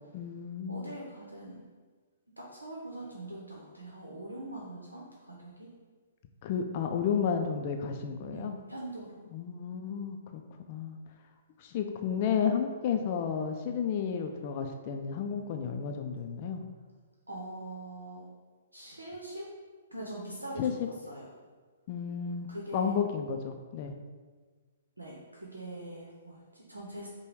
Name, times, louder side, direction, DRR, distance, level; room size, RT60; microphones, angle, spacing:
voice 1, 0.1-0.9 6.4-8.5 9.3-10.4 10.7-11.0 11.6-16.6 20.6-20.7 21.9-23.9, left 7 dB, 45° left, 5 dB, 0.4 m, -32 dB
voice 2, 0.7-1.6 2.4-5.7 8.3-9.1 17.3-18.2 18.7-19.5 19.9-20.7 21.0-21.2 22.5-22.9 25.0-27.1, right 1 dB, 90° right, -3 dB, 0.8 m, -42 dB
4.9 x 2.2 x 4.6 m, 1.4 s
figure-of-eight pair, 125°, 0 cm